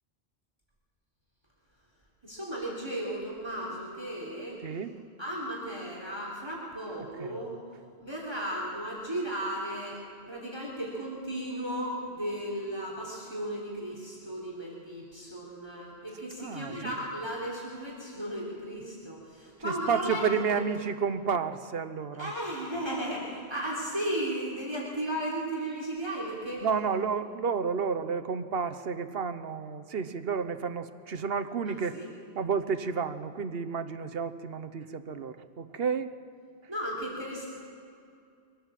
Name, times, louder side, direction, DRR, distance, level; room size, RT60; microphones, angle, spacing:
voice 1, 2.2-4.6 5.2-7.6 8.0-10.0 10.3-20.4 22.2-26.7 31.7-32.1 36.7-37.5, right 1 dB, 25° right, -3 dB, 3.4 m, -35 dB
voice 2, 4.6-4.9 7.0-7.4 16.4-17.0 19.6-22.3 26.6-32.0 32.3-36.1, right 6 dB, 65° right, 10 dB, 1.1 m, -31 dB
24.0 x 17.5 x 7.4 m, 2.4 s
omnidirectional pair, 1.1 m